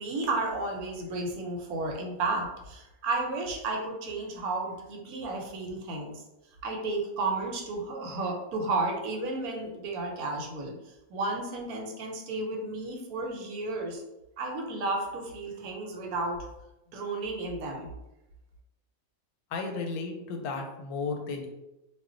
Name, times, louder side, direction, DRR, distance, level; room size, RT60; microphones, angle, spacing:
voice 1, 0.0-6.2 6.6-10.7 11.1-14.0 14.4-16.5 16.9-17.9, right 2 dB, 90° right, 1 dB, 1.1 m, -32 dB
voice 2, 19.5-21.5, left 4 dB, 90° left, 3 dB, 1.1 m, -34 dB
2.5 x 2.1 x 3.7 m, 0.94 s
omnidirectional pair, 1.5 m